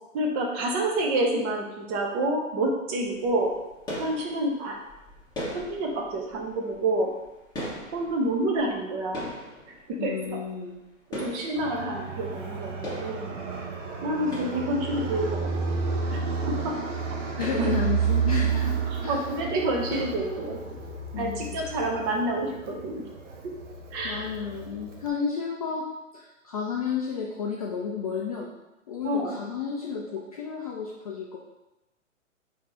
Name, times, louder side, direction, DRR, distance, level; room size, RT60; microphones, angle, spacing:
voice 1, 0.1-3.5 4.0-4.8 5.5-7.1 7.9-9.3 9.9-10.4 11.1-13.3 14.0-15.5 16.1-16.2 16.5-16.7 17.4-17.8 18.9-20.6 21.1-23.0 23.4-23.5 23.9-24.3 29.0-29.4, right 1 dB, 20° right, 0 dB, 0.6 m, -28 dB
sound 1, 3.0-12.6 12.8-15.3 15.8-15.9 16.2-16.3 16.5-16.7 17.1-18.9 19.2-19.5 19.9-20.9, equal, 10° left, 1.1 m, -41 dB
voice 2, 10.0-10.8 14.2-14.3 17.4-19.2 21.1-21.7 24.0-25.9 26.1-28.5 28.9-31.4, left 6 dB, 30° left, -3 dB, 0.4 m, -32 dB
Fixed-wing aircraft airplane, 11.6-25.1, right 5 dB, 65° right, 0.8 m, -31 dB
4.4 x 2.8 x 3.7 m, 0.98 s
hypercardioid pair, 125°, 40 cm